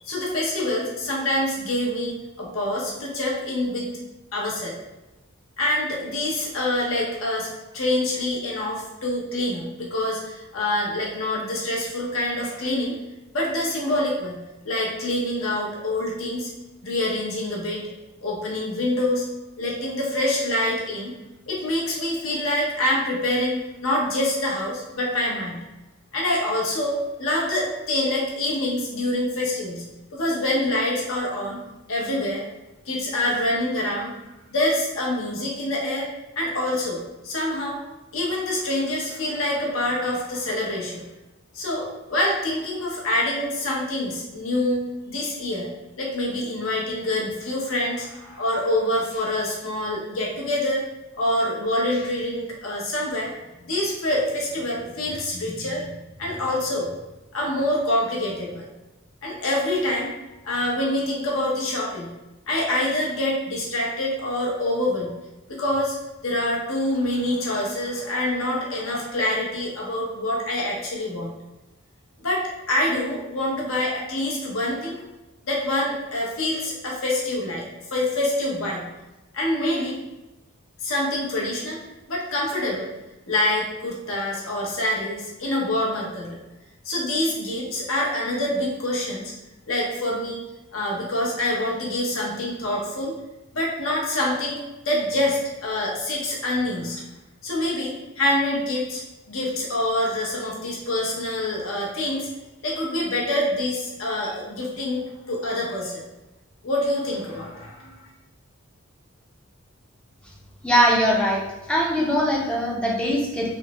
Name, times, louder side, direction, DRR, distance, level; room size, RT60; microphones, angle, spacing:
voice 1, 0.0-3.9 4.3-4.8 5.6-12.9 13.3-16.5 16.8-17.8 18.2-19.2 19.6-21.1 21.5-25.6 26.1-29.8 30.1-31.6 31.9-32.4 32.9-34.1 34.5-36.1 36.4-37.8 38.1-41.1 41.5-45.7 46.0-50.8 51.2-53.3 53.6-56.9 57.3-58.6 59.2-60.1 60.4-62.1 62.5-65.1 65.5-66.0 66.2-71.3 72.2-75.0 75.4-78.9 79.3-80.0 80.8-81.8 82.1-82.9 83.3-86.4 86.8-89.3 89.7-90.4 90.7-93.1 93.5-94.6 94.8-97.0 97.4-99.0 99.3-102.3 102.6-106.0 106.6-108.1, left 1 dB, 70° left, -3 dB, 0.8 m, -26 dB
voice 2, 110.6-111.4 111.7-113.6, equal, 5° left, -3 dB, 0.5 m, -21 dB
3.4 x 2.1 x 2.9 m, 1.0 s
head